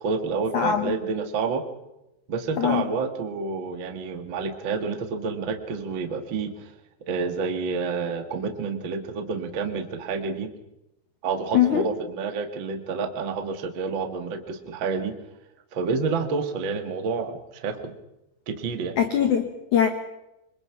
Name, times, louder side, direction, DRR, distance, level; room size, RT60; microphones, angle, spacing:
voice 1, 0.0-1.6 2.3-6.7 7.1-10.5 11.2-15.1 15.7-17.9 18.5-18.9, right 4 dB, 80° right, 6 dB, 1.0 m, -29 dB
voice 2, 0.5-0.9 2.6-2.8 11.5-11.8 19.0-19.9, left 9 dB, 65° left, 7 dB, 1.9 m, -22 dB
26.5 x 22.5 x 5.9 m, 0.92 s
omnidirectional pair, 5.5 m